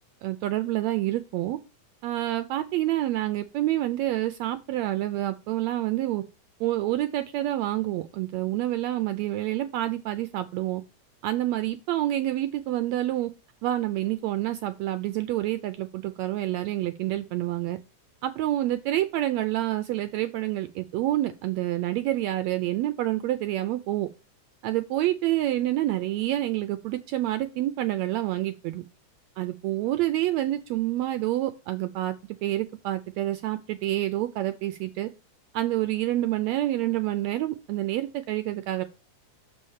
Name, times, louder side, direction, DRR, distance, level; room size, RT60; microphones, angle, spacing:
voice 1, 0.2-1.6 2.0-6.2 6.6-10.8 11.2-13.3 13.6-17.8 18.2-24.1 24.6-28.8 29.4-32.2 32.4-35.1 35.5-38.8, right 14 dB, 80° right, 1.6 m, -28 dB
6.9 x 4.4 x 6.4 m
omnidirectional pair, 3.5 m